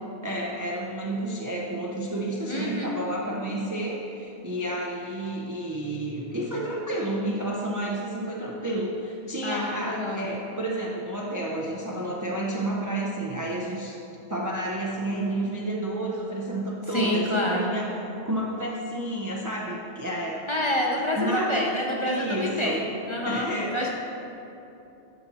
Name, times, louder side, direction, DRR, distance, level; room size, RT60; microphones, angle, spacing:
voice 1, 0.2-14.0 14.3-17.9 18.2-20.5 21.0-21.7 22.0-22.9 23.2-23.9, right 1 dB, 25° right, -3 dB, 0.4 m, -30 dB
voice 2, 2.5-2.9 9.4-10.3 16.9-17.7 20.5-23.5 23.7-23.9, left 1 dB, 30° left, -2 dB, 0.7 m, -27 dB
11.0 x 4.1 x 4.2 m, 2.9 s
omnidirectional pair, 1.2 m